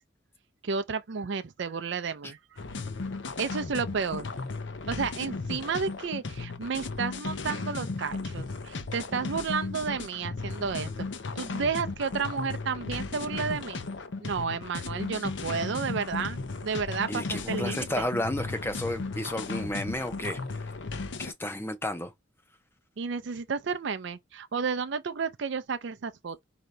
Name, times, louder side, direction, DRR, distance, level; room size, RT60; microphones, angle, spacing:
voice 1, 0.6-2.4 3.4-4.3 4.9-10.9 11.4-13.8 14.2-18.1 23.0-26.4, right 5 dB, 65° right, 0.5 m, -32 dB
sound 1, 2.6-21.3, left 3 dB, 70° left, 0.7 m, -35 dB
voice 2, 17.1-20.6 21.2-22.1, left 1 dB, 10° left, 0.6 m, -32 dB
5.0 x 2.8 x 3.2 m
head